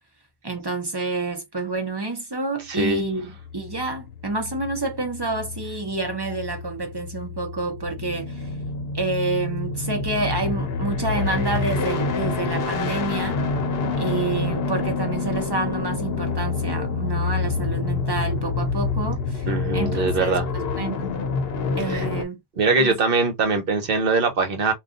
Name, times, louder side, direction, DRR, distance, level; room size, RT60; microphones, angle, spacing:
voice 1, 0.4-8.4 8.9-13.4 14.0-19.5 19.7-21.1 21.8-22.4 22.8-23.0, right 3 dB, 25° right, 0.8 m, -28 dB
voice 2, 2.7-3.0 19.5-20.4 21.9-22.0 22.6-24.7, right 4 dB, 65° right, 1.1 m, -22 dB
sound 1, 3.2-22.2, left 4 dB, 70° left, 0.9 m, -27 dB
2.4 x 2.3 x 3.7 m
omnidirectional pair, 1.0 m